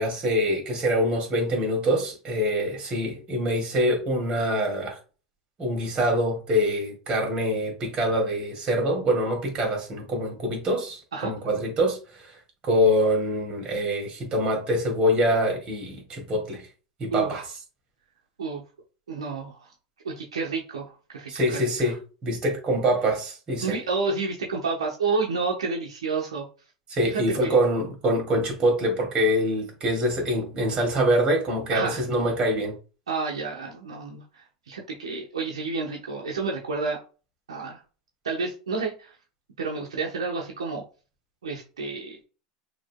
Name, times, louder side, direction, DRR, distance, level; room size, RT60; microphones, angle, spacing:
voice 1, 0.0-5.0 5.6-12.2 12.6-16.7 17.0-17.4 21.3-22.0 22.2-23.7 26.9-32.7, equal, 35° right, 2.2 m, -25 dB
voice 2, 17.1-17.4 18.4-18.6 19.1-19.7 20.0-21.9 23.6-26.5 27.0-27.6 31.7-32.0 33.1-37.0 37.5-37.8 38.2-39.1 39.6-40.8 41.4-42.2, right 4 dB, 80° right, 0.9 m, -30 dB
6.1 x 3.0 x 2.2 m
hypercardioid pair, 85°, 3 cm